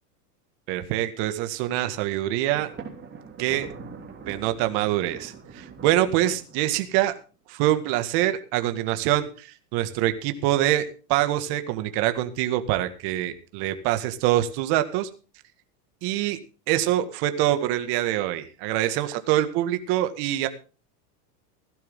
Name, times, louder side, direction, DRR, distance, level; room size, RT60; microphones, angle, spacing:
voice 1, 0.7-2.7 3.4-3.7 4.3-7.2 7.5-10.8 11.1-15.1 16.0-16.4 16.7-20.5, right 13 dB, 50° right, 9 dB, 2.0 m, -25 dB
Thunder, 2.5-7.1, right 5 dB, 20° right, 3.5 m, -43 dB
16.5 x 12.0 x 3.8 m, 0.36 s
supercardioid pair, 125°, 49 cm